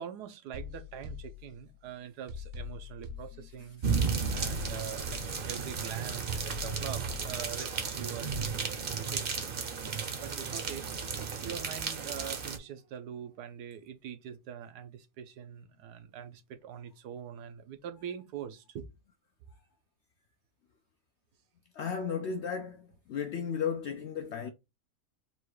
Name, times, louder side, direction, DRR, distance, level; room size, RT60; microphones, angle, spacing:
voice 1, 0.0-3.8 4.3-9.6 10.2-10.9 11.4-18.9, right 8 dB, 90° right, 1.3 m, -44 dB
sound 1, 0.5-1.8 2.3-3.8 4.3-5.8 6.3-7.8 8.3-8.5, left 5 dB, 65° right, 1.0 m, -44 dB
sound 2, 3.8-12.6, right 5 dB, 50° right, 0.7 m, -34 dB
voice 2, 21.7-24.5, left 7 dB, 80° left, 0.6 m, -34 dB
4.1 x 2.3 x 4.6 m
omnidirectional pair, 1.7 m